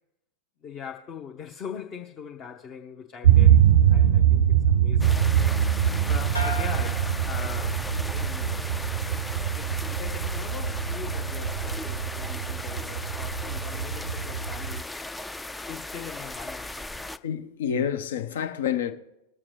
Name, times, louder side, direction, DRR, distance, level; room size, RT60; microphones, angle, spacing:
voice 1, 0.6-5.7 6.0-8.6 9.3-15.1 15.7-17.1, left 7 dB, 30° left, 0.8 m, -42 dB
sound 1, 3.2-14.8, right 10 dB, 65° right, 0.4 m, -23 dB
sound 2, 5.0-17.2, left 2 dB, 5° left, 0.3 m, -37 dB
sound 3, 6.3-8.1 8.5-9.1, left 2 dB, 90° left, 1.1 m, -37 dB
voice 2, 17.2-18.9, left 8 dB, 60° left, 0.8 m, -28 dB
21.0 x 7.4 x 3.3 m
figure-of-eight pair, 90°, 0 cm